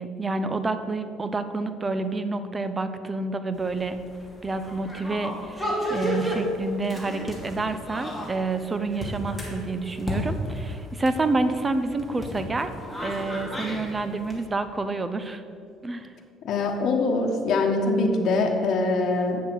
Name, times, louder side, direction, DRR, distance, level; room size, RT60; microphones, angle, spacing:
voice 1, 0.0-4.0 4.4-12.7 13.0-15.4 15.8-16.1, right 3 dB, 20° right, 10 dB, 0.7 m, -28 dB
sound 1, 3.5-14.4, equal, 5° right, 2.3 m, -33 dB
voice 2, 16.4-19.4, left 3 dB, 60° left, 2 dB, 1.2 m, -23 dB
8.3 x 6.5 x 6.0 m, 2.4 s
cardioid pair, 100°, 0 cm